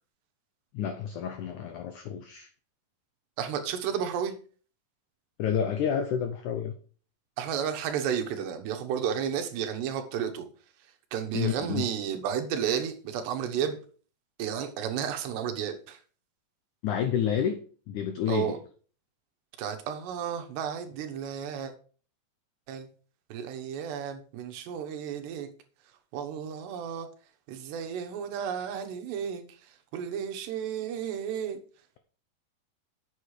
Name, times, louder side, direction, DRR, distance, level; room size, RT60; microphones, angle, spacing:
voice 1, 0.7-2.5 5.4-6.7 11.3-11.8 16.8-17.6 17.9-18.6, left 8 dB, 85° left, 8 dB, 1.7 m, -29 dB
voice 2, 3.4-4.4 7.4-10.4 11.1-13.8 14.4-16.0 18.3-18.6 19.6-21.7 22.7-22.9 23.3-25.5 26.1-27.1 27.5-29.4 29.9-31.6, right 8 dB, 90° right, 6 dB, 3.4 m, -32 dB
8.3 x 7.8 x 4.8 m, 0.41 s
omnidirectional pair, 4.7 m